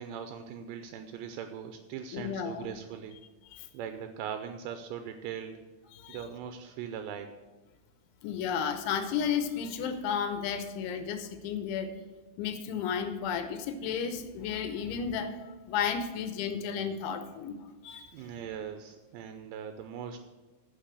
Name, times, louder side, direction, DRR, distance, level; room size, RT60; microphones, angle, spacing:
voice 1, 0.0-3.2 3.7-5.6 6.1-7.3 18.1-20.3, right 8 dB, 85° right, 7 dB, 2.5 m, -40 dB
voice 2, 2.1-2.8 3.5-3.7 5.9-6.2 8.2-11.9 12.4-17.6 17.8-18.1, left 7 dB, 85° left, 8 dB, 3.1 m, -33 dB
10.0 x 5.9 x 8.1 m, 1.2 s
omnidirectional pair, 5.5 m